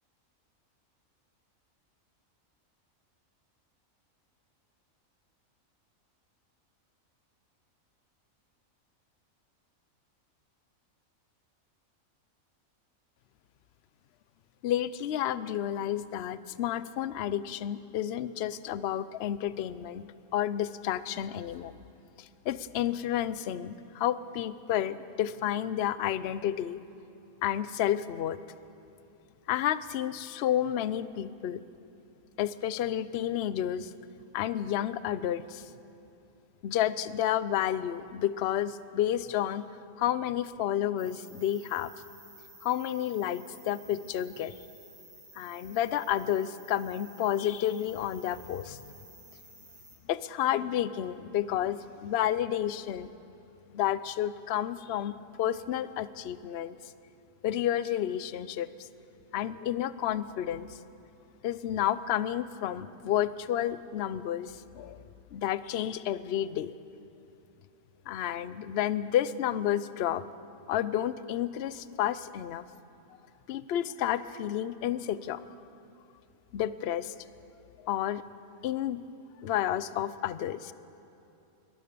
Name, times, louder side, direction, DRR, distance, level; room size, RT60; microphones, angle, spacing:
voice 1, 14.6-20.0 20.3-21.7 22.2-26.8 27.4-28.4 29.5-31.6 32.4-33.9 34.3-35.7 36.6-39.7 40.0-41.9 42.6-44.5 45.3-48.8 50.1-53.1 53.7-56.8 57.4-58.9 59.3-60.8 61.4-65.0 65.3-66.7 68.1-70.2 70.7-72.7 73.5-75.4 76.5-77.2 77.8-78.2 78.6-79.0 79.4-80.7, left 11 dB, 55° left, 16 dB, 0.8 m, -30 dB
sound 1, 41.0-50.0, right 2 dB, 90° right, 4.3 m, -54 dB
22.5 x 19.0 x 6.9 m, 2.8 s
omnidirectional pair, 1.4 m